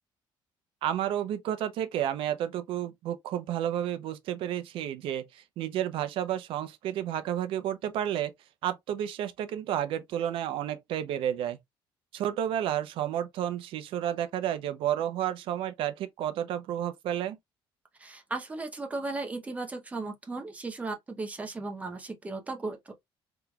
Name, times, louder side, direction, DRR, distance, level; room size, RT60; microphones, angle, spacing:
voice 1, 0.8-8.3 8.6-11.6 12.1-17.4, right 10 dB, 70° right, 0.6 m, -31 dB
voice 2, 18.0-22.9, right 3 dB, 15° right, 0.7 m, -36 dB
3.6 x 2.9 x 2.3 m
cardioid pair, 165°, 9 cm